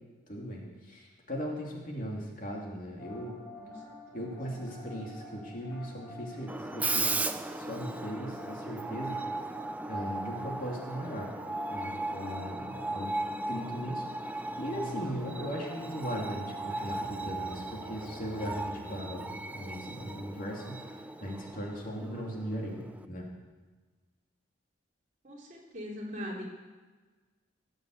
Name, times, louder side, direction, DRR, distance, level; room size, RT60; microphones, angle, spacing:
voice 1, 0.3-3.4 4.1-9.2 9.9-11.3 11.7-13.1 13.5-23.3, equal, 40° left, -1 dB, 3.0 m, -38 dB
sound 1, 3.0-20.8, left 1 dB, 10° left, 4.1 m, -48 dB
Screech, 6.5-23.1, right 2 dB, 10° right, 0.5 m, -37 dB
voice 2, 25.2-26.4, equal, 40° right, -3 dB, 3.6 m, -40 dB
17.5 x 8.6 x 8.0 m, 1.3 s
head